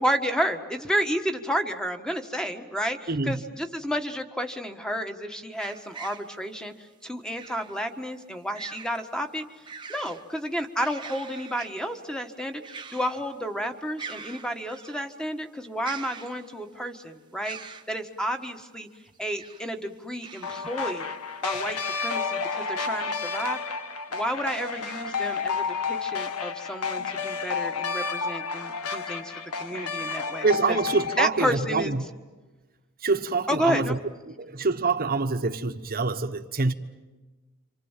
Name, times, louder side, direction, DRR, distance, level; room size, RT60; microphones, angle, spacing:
voice 1, 0.0-6.7 7.0-9.5 9.9-18.9 19.2-21.0 21.4-23.6 24.1-30.8 31.2-31.9 33.5-34.0, equal, 5° left, 1.5 m, -31 dB
voice 2, 3.1-3.4 30.4-32.0 33.0-34.0 34.4-36.7, right 3 dB, 40° right, 1.2 m, -25 dB
sound 1, 5.6-6.3 7.4-7.8 8.5-9.0 9.4-10.2 10.6-11.9 12.6-13.3 13.6-13.7 14.0-15.0 15.8-16.7 17.4-17.9 19.1-19.7 20.2-20.7 21.2-21.3 21.9-22.1, right 5 dB, 20° right, 1.1 m, -42 dB
sound 2, 20.4-31.2, left 5 dB, 85° left, 1.5 m, -31 dB
28.5 x 26.5 x 7.4 m
head